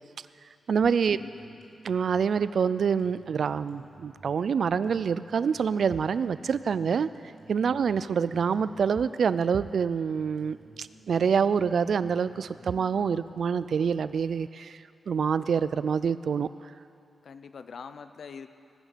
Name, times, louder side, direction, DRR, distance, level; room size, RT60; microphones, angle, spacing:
voice 1, 0.7-1.2 1.8-7.1 7.5-16.5, right 6 dB, 65° right, 15 dB, 0.4 m, -26 dB
sound 1, 1.1-14.0, right 3 dB, 45° right, 3.2 m, -54 dB
voice 2, 1.2-1.7 7.8-8.0 17.2-18.5, left 6 dB, 60° left, 10 dB, 0.6 m, -44 dB
20.5 x 9.2 x 6.7 m, 2.6 s
wide cardioid pair, 145°, 0 cm